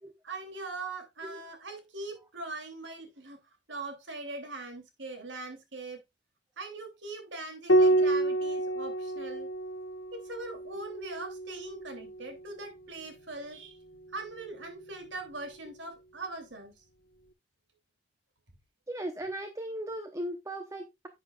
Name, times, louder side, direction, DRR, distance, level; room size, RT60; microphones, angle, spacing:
voice 1, 0.2-3.4 3.7-6.0 6.6-9.5 10.1-13.8 14.1-16.8, right 3 dB, 80° right, 2.8 m, -41 dB
Piano, 7.7-12.5 14.2-15.0, right 2 dB, 75° left, 1.0 m, -29 dB
voice 2, 18.9-21.1, right 1 dB, 15° right, 0.8 m, -37 dB
11.0 x 8.2 x 2.3 m
head